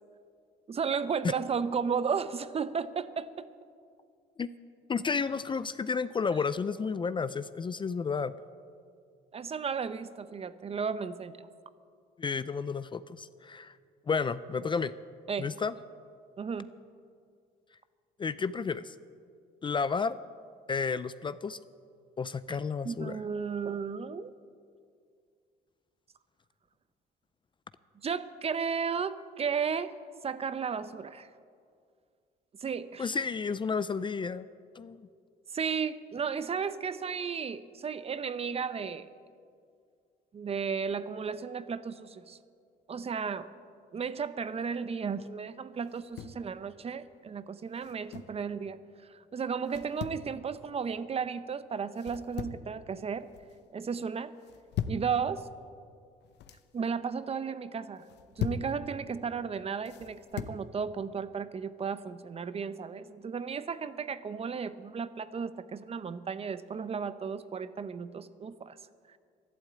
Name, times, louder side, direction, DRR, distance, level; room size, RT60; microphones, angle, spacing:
voice 1, 0.7-3.5 9.3-11.5 15.3-15.5 16.4-16.7 22.5-22.6 22.8-24.3 28.0-29.9 30.2-31.3 32.6-33.1 35.5-39.1 40.3-42.4 42.9-43.5 43.9-48.8 49.1-53.3 53.7-54.3 54.9-55.5 56.7-58.0 58.4-68.8, right 6 dB, 35° right, 14 dB, 0.7 m, -34 dB
voice 2, 4.9-8.3 12.2-13.7 14.1-14.9 15.4-15.7 18.2-18.9 19.6-20.2 20.7-21.6 22.2-23.2 33.0-34.5 34.8-35.1, left 5 dB, 25° left, 15 dB, 0.5 m, -31 dB
sound 1, 45.9-46.4 47.8-48.4 49.7-50.3 52.0-52.7 53.1-53.6 54.4-55.1 56.1-56.7 58.0-58.7 59.9-60.6, left 8 dB, 70° left, 0.8 m, -38 dB
12.0 x 11.5 x 8.6 m, 2.3 s
cardioid pair, 90°, 18 cm